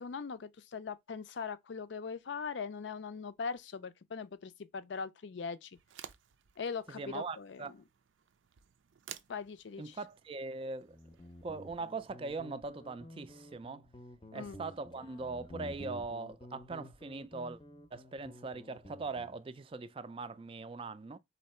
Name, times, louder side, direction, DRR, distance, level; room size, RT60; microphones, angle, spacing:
voice 1, 0.0-5.7 6.6-7.7 9.3-10.0 14.3-14.6, left 5 dB, 70° left, 0.5 m, -41 dB
sound 1, 5.7-12.1, right 10 dB, 90° right, 0.5 m, -55 dB
voice 2, 6.9-7.7 9.8-11.0 11.4-13.8 14.3-17.6 17.9-21.2, right 3 dB, 30° right, 0.3 m, -41 dB
Guitar, 10.9-19.4, equal, 25° left, 0.6 m, -51 dB
4.3 x 2.8 x 4.2 m
head